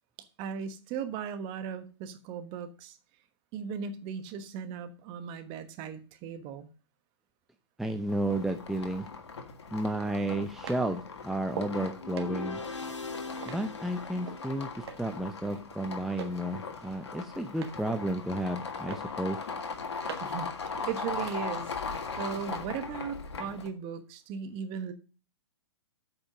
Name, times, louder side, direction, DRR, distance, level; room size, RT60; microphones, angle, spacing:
voice 1, 0.4-3.0 3.5-6.7 20.2-24.9, right 7 dB, 35° right, 10 dB, 1.3 m, -37 dB
voice 2, 7.8-9.1 9.7-12.6 13.5-19.4, right 1 dB, ahead, 5 dB, 0.6 m, -32 dB
sound 1, 8.1-23.7, left 5 dB, 70° left, 1.6 m, -39 dB
sound 2, 9.0-9.1 10.1-11.8 12.2-14.5 14.9-15.3 15.5-16.4 16.8-17.9 18.2-18.6 18.9-20.4 20.7-22.1 22.5-22.6, right 6 dB, 65° right, 1.4 m, -44 dB
sound 3, 12.0-15.2, left 3 dB, 85° left, 1.1 m, -41 dB
8.6 x 5.3 x 6.4 m, 0.36 s
figure-of-eight pair, 115°, 15 cm